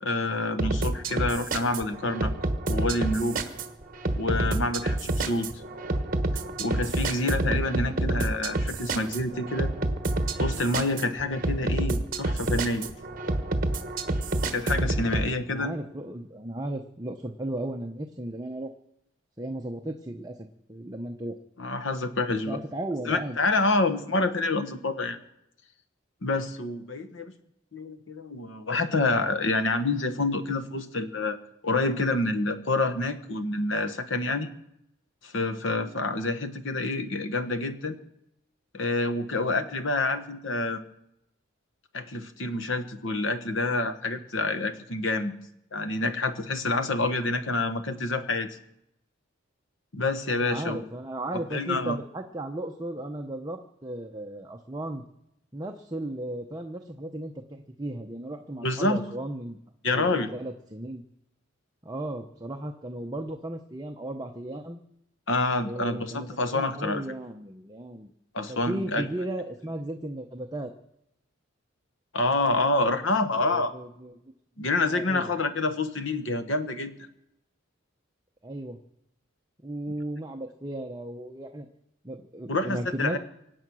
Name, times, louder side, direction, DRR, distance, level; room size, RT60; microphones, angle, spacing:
voice 1, 0.0-2.3 2.7-3.4 4.1-5.6 6.6-9.7 10.4-12.9 14.5-15.7 21.6-22.6 23.0-25.2 26.2-27.3 27.7-31.4 31.6-34.5 35.2-38.0 38.7-40.8 41.9-45.3 45.7-48.6 49.9-50.8 51.3-52.0 58.6-59.0 59.8-60.3 65.3-67.0 68.3-69.0 72.1-73.7 74.6-76.9 82.5-83.2, left 2 dB, 70° left, 10 dB, 1.3 m, -27 dB
sound 1, 0.6-15.3, right 2 dB, 40° right, 1.2 m, -28 dB
voice 2, 7.7-8.3 15.5-18.7 19.4-21.4 22.5-23.4 50.3-55.1 55.5-59.6 59.9-61.0 61.8-64.8 65.6-68.1 68.5-70.7 73.4-74.2 74.9-75.3 78.4-78.8 79.6-81.7 82.0-83.2, right 1 dB, 20° right, 4 dB, 0.8 m, -35 dB
25.0 x 8.5 x 6.3 m, 0.83 s
head